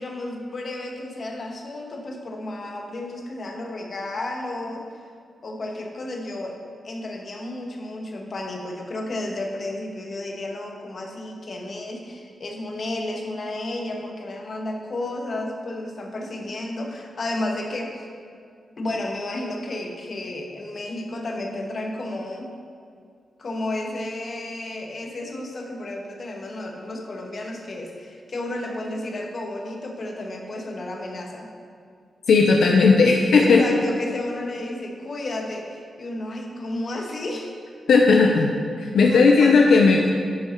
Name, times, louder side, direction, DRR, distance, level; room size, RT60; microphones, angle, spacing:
voice 1, 0.0-4.8 5.4-6.6 6.8-18.1 18.8-22.5 23.4-31.5 33.4-37.5 39.0-40.1, left 1 dB, 50° left, 2 dB, 1.3 m, -32 dB
voice 2, 32.3-33.6 37.9-38.5 38.8-40.1, left 4 dB, 80° left, 1 dB, 0.6 m, -16 dB
10.5 x 5.5 x 4.5 m, 2.3 s
cardioid pair, 80°, 0 cm